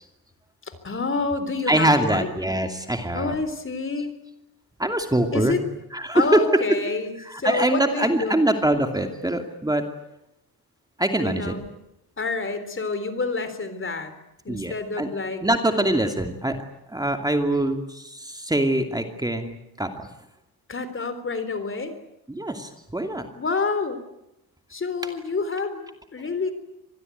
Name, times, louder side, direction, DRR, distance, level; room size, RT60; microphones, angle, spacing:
voice 1, 0.7-2.3 3.1-4.1 5.3-5.6 6.1-8.3 11.2-11.6 12.2-14.1 14.5-15.4 20.7-22.0 23.3-24.0 24.7-26.5, left 4 dB, 35° left, 11 dB, 3.7 m, -28 dB
voice 2, 1.7-3.3 4.8-5.6 5.9-6.4 7.3-9.9 11.0-11.5 14.5-15.1 15.4-16.6 16.9-20.1 22.3-23.3, right 1 dB, 10° right, 5 dB, 2.6 m, -23 dB
26.0 x 20.0 x 9.3 m, 0.85 s
cardioid pair, 105°, 37 cm